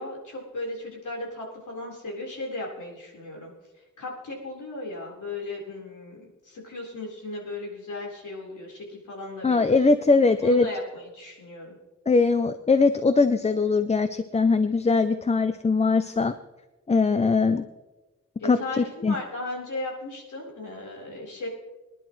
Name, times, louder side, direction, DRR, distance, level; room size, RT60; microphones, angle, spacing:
voice 1, 0.0-3.5 4.0-9.8 10.4-11.8 18.4-21.5, left 2 dB, 85° left, -2 dB, 4.3 m, -36 dB
voice 2, 9.4-10.7 12.1-16.3 16.9-17.7 18.4-19.2, left 4 dB, 25° left, 10 dB, 0.4 m, -21 dB
24.0 x 11.0 x 3.1 m, 1.1 s
wide cardioid pair, 175°, 30 cm